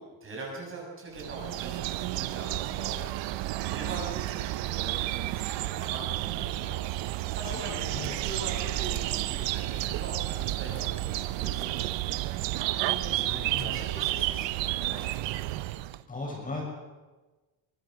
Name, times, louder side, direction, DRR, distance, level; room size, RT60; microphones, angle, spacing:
voice 1, 0.0-6.9 7.3-11.8 12.6-15.0, right 2 dB, 30° right, -1 dB, 6.9 m, -42 dB
sound 1, 1.2-16.0, right 16 dB, 85° right, 1.0 m, -31 dB
voice 2, 7.5-8.1 12.9-13.8 16.1-16.7, left 3 dB, 20° left, -2 dB, 7.2 m, -38 dB
23.5 x 19.5 x 6.5 m, 1.2 s
cardioid pair, 165°, 43 cm